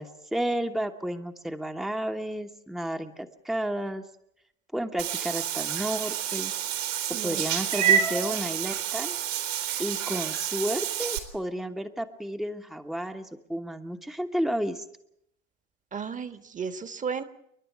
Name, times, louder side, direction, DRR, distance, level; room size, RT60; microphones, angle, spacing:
voice 1, 0.0-4.0 4.7-6.5 7.2-9.2 9.8-14.8, equal, ahead, 7 dB, 1.2 m, -32 dB
Meow / Water / Bathtub (filling or washing), 5.0-11.2, right 9 dB, 65° right, 3.5 m, -28 dB
voice 2, 7.1-7.4 7.7-8.1 15.9-17.2, right 6 dB, 20° right, 11 dB, 1.5 m, -34 dB
29.0 x 11.5 x 9.4 m, 0.77 s
figure-of-eight pair, 85°, 39 cm